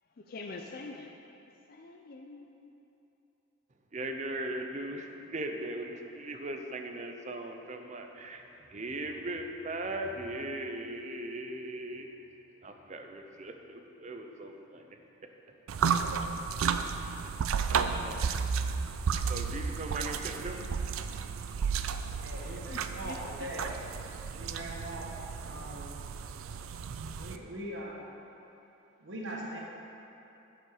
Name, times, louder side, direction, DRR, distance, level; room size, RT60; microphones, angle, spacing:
voice 1, 0.2-1.1 1.7-2.7 22.4-23.2, left 3 dB, 45° left, 2 dB, 0.4 m, -45 dB
voice 2, 3.9-12.1 12.6-15.3 16.6-17.2 17.7-18.4 19.3-20.7 22.1-22.3, right 1 dB, 35° right, 4 dB, 0.6 m, -39 dB
sound 1, 15.7-27.4, right 6 dB, 85° right, 0.4 m, -33 dB
voice 3, 22.2-23.6 24.3-25.1 25.4-25.9 27.2-28.1 29.0-29.6, right 1 dB, 60° right, -3 dB, 1.2 m, -41 dB
9.0 x 6.9 x 4.8 m, 2.9 s
head